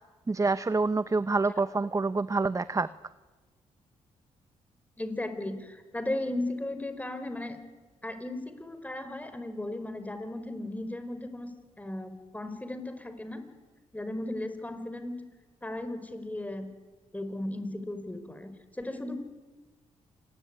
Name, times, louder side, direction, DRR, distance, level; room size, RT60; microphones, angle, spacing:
voice 1, 0.3-2.9, right 3 dB, 25° right, 14 dB, 0.9 m, -27 dB
voice 2, 5.0-7.6 8.0-11.5 11.8-13.4 13.9-15.2 15.6-16.7 17.1-19.1, left 1 dB, 10° left, 10 dB, 4.9 m, -36 dB
27.0 x 20.5 x 9.9 m, 1.3 s
cardioid pair, 70°, 13 cm